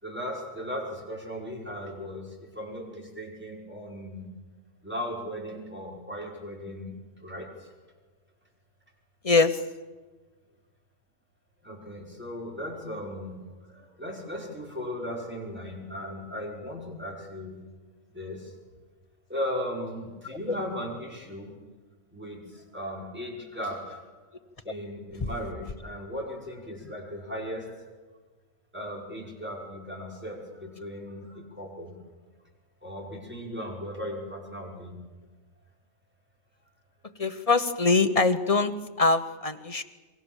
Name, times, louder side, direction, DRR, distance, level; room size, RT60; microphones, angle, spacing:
voice 1, 0.0-4.3 4.8-6.9 7.2-7.7 11.6-17.6 18.1-18.5 19.3-21.5 22.1-24.0 24.7-27.8 28.7-31.9 32.8-34.9, equal, 5° right, -2 dB, 5.5 m, -37 dB
voice 2, 9.2-9.6 20.5-20.6 37.2-39.8, left 3 dB, 30° left, 8 dB, 1.1 m, -23 dB
28.0 x 23.0 x 7.3 m, 1.3 s
omnidirectional pair, 1.4 m